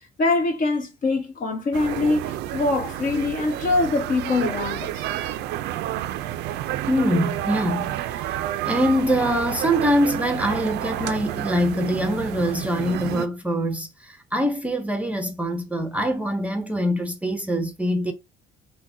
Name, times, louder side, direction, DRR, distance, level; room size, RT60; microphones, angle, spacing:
voice 1, 0.2-5.0, left 3 dB, 50° left, 1.4 m, -23 dB
sound 1, 1.7-13.3, right 13 dB, 85° right, 0.5 m, -30 dB
voice 2, 6.9-8.4 8.7-18.1, equal, 10° right, 0.6 m, -24 dB
5.9 x 2.3 x 2.6 m
cardioid pair, 110°, 17 cm